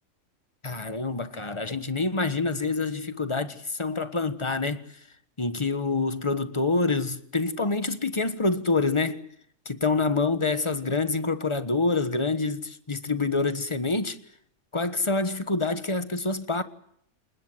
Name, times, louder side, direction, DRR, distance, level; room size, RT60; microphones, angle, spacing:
voice 1, 0.6-4.8 5.4-9.2 9.6-14.2 14.7-16.6, left 3 dB, 20° left, 1.2 m, -26 dB
28.5 x 19.0 x 7.8 m
omnidirectional pair, 1.5 m